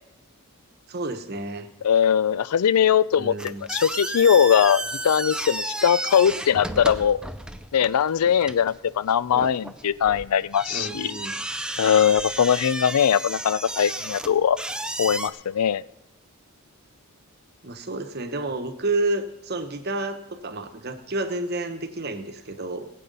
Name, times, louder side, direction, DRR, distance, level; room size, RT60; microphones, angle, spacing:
voice 1, 0.9-1.7 3.1-3.6 10.7-11.4 17.6-22.9, right 2 dB, 45° right, 8 dB, 1.1 m, -30 dB
voice 2, 1.8-3.3 3.7-7.2 7.7-11.1 11.8-14.6 15.0-15.8, left 8 dB, 90° left, 19 dB, 0.4 m, -21 dB
sound 1, 3.4-15.3, right 1 dB, 5° right, 0.5 m, -33 dB
19.0 x 8.4 x 5.4 m, 0.92 s
head